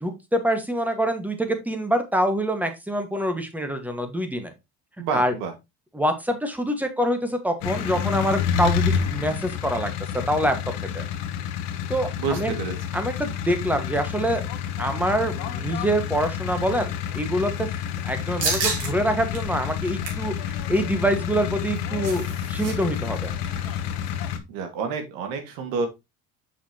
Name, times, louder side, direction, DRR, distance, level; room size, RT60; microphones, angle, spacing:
voice 1, 0.0-4.5 5.1-5.3 5.9-10.5 10.9-11.0 11.9-12.5 12.9-14.4 14.8-17.7 18.0-23.3, right 1 dB, 5° right, 7 dB, 1.4 m, -25 dB
voice 2, 5.0-5.5 12.2-12.8 24.5-25.9, right 5 dB, 85° right, 6 dB, 1.9 m, -28 dB
sound 1, 7.6-24.4, left 8 dB, 85° left, 1.1 m, -29 dB
sound 2, 18.4-18.9 19.3-19.4 19.8-20.3 21.5-22.7 23.0-23.1 23.4-23.7, right 4 dB, 65° right, 3.4 m, -29 dB
6.9 x 5.6 x 2.8 m, 0.22 s
cardioid pair, 115°, 34 cm